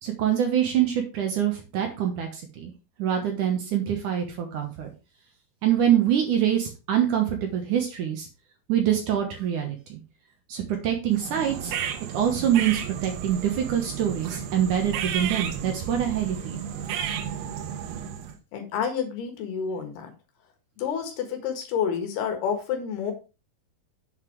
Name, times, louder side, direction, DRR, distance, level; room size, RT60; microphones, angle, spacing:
voice 1, 0.0-2.7 3.0-4.9 5.6-8.3 8.7-10.0 10.5-11.7 12.1-16.6, right 10 dB, 65° right, 3 dB, 2.3 m, -25 dB
sound 1, 11.1-18.4, right 8 dB, 80° right, 3.0 m, -33 dB
voice 2, 18.5-20.1 20.8-23.1, left 7 dB, 75° left, 5 dB, 3.5 m, -29 dB
7.8 x 5.8 x 4.7 m, 0.31 s
omnidirectional pair, 4.7 m